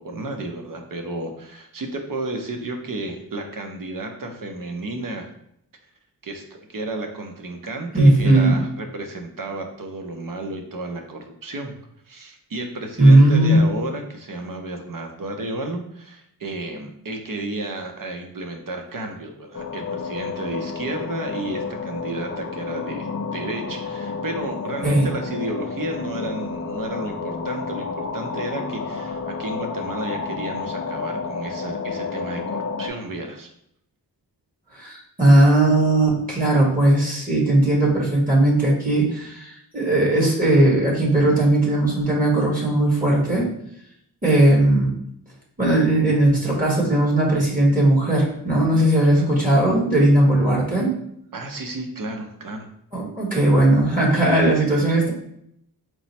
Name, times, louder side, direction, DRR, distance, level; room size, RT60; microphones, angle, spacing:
voice 1, 0.0-5.3 6.2-11.7 12.1-33.5 51.3-52.7, right 2 dB, 55° right, 3 dB, 0.7 m, -32 dB
voice 2, 7.9-8.6 13.0-13.6 24.8-25.1 34.7-43.5 44.2-44.9 45.6-50.9 52.9-55.1, right 1 dB, 20° right, -4 dB, 1.2 m, -18 dB
sound 1, 19.5-32.9, left 4 dB, 40° left, 0.5 m, -30 dB
4.6 x 2.0 x 4.1 m, 0.73 s
wide cardioid pair, 110°, 39 cm